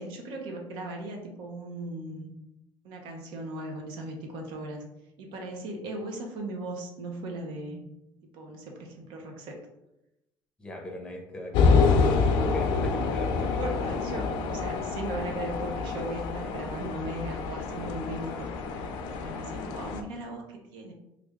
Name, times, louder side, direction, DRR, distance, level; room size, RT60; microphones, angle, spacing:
voice 1, 0.0-2.3 2.8-4.9 5.2-7.8 8.3-9.6 13.3-18.5 18.8-20.9, right 2 dB, 75° right, 2 dB, 0.8 m, -38 dB
voice 2, 10.6-13.6, left 1 dB, 10° left, 1 dB, 0.6 m, -40 dB
sound 1, 11.5-20.0, left 4 dB, 80° left, 0.4 m, -27 dB
3.3 x 2.5 x 3.4 m, 0.88 s
cardioid pair, 155°, 8 cm